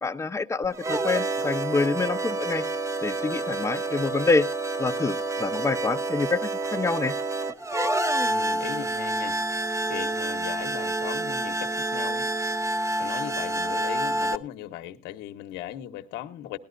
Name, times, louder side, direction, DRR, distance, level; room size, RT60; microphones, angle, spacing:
voice 1, 0.0-2.6 3.0-4.5 4.8-7.1, left 3 dB, 15° left, 0.6 m, -26 dB
sound 1, 0.6-14.4, right 2 dB, 15° right, 0.8 m, -28 dB
voice 2, 8.2-9.4 9.9-12.3 13.0-16.6, left 12 dB, 90° left, 1.0 m, -38 dB
19.0 x 12.5 x 2.5 m
cardioid pair, 110°, 17 cm